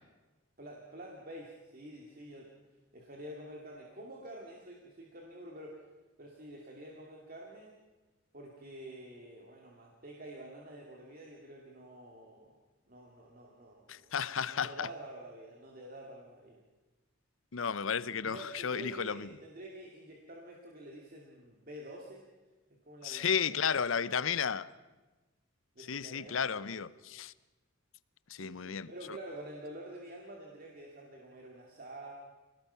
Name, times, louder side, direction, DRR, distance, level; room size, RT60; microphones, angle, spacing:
voice 1, 0.6-2.5 2.9-5.8 6.2-7.7 8.3-12.5 12.9-16.6 18.1-22.2 22.9-24.5 25.7-26.9 28.3-32.1, right 1 dB, 45° right, 2.5 m, -48 dB
voice 2, 13.9-14.9 17.5-19.3 23.0-24.7 25.9-27.3 28.3-28.9, left 7 dB, 75° left, 0.7 m, -33 dB
25.5 x 18.5 x 5.7 m
head